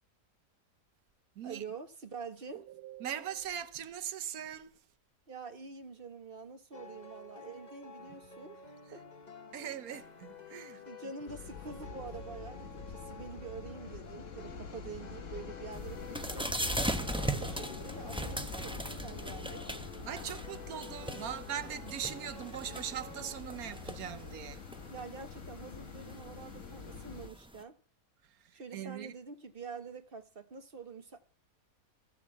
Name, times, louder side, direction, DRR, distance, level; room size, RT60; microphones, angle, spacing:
voice 1, 1.4-2.6 5.3-9.0 10.8-16.5 16.9-19.7 24.9-27.8 28.5-31.2, right 5 dB, 40° right, 1.6 m, -46 dB
voice 2, 2.5-4.7 9.5-10.8 20.0-24.6 28.4-29.1, right 9 dB, 85° right, 1.3 m, -40 dB
sound 1, 6.7-23.4, left 4 dB, 30° left, 1.2 m, -51 dB
sound 2, 11.3-27.3, left 5 dB, 60° left, 1.6 m, -46 dB
sound 3, 15.7-27.6, right 1 dB, 5° right, 0.7 m, -40 dB
14.5 x 7.5 x 7.3 m
omnidirectional pair, 1.5 m